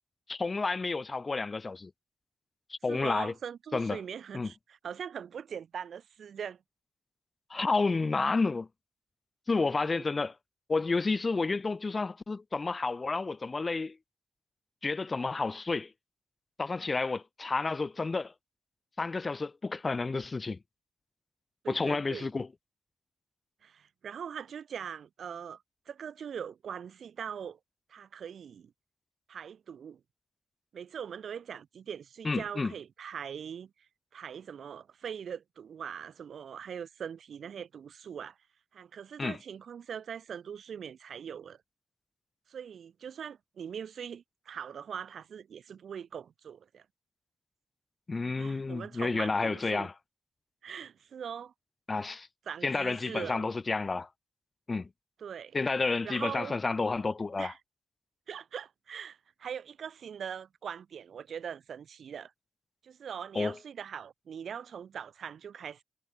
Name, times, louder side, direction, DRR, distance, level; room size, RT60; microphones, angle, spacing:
voice 1, 0.3-1.9 2.7-3.3 3.7-4.0 4.3-4.5 7.5-8.7 9.5-10.3 10.7-14.0 14.8-15.9 16.6-18.3 19.0-20.6 21.7-22.5 32.2-32.7 39.2-39.4 48.1-49.9 51.9-52.3 52.6-54.1 54.7-54.9 55.5-57.5 63.3-63.6, left 3 dB, 30° left, 2.7 m, -30 dB
voice 2, 2.9-6.6 9.9-10.0 21.6-22.3 23.6-27.6 27.9-28.7 29.3-30.0 30.7-33.7 34.1-38.4 38.7-41.6 42.5-46.9 48.4-49.9 50.6-51.5 52.5-53.5 55.2-55.6 56.0-56.6 57.4-57.6 58.3-62.3 62.8-65.8, right 7 dB, 65° right, 5.9 m, -41 dB
cardioid pair, 95°, 0 cm